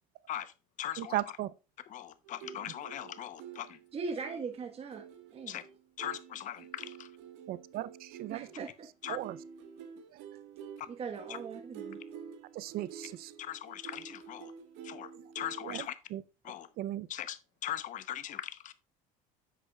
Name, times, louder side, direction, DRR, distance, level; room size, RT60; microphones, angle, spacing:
voice 1, 0.3-1.4 1.8-3.8 5.5-5.6 6.0-7.1 9.0-9.2 10.8-10.9 11.3-11.4 13.4-14.5 14.8-16.0 16.4-16.7 17.1-18.7, left 12 dB, 45° left, 0.8 m, -40 dB
voice 2, 1.0-1.5 7.5-8.5 9.1-9.3 12.6-13.3 15.7-15.8 16.1-16.2 16.8-17.1, right 14 dB, 60° right, 0.6 m, -36 dB
sound 1, 2.2-15.8, right 7 dB, 75° right, 1.7 m, -49 dB
voice 3, 3.9-5.0 5.3-5.6 8.3-8.9 10.9-12.0, right 5 dB, 35° right, 1.3 m, -40 dB
9.6 x 6.7 x 2.3 m
supercardioid pair, 105°, 18 cm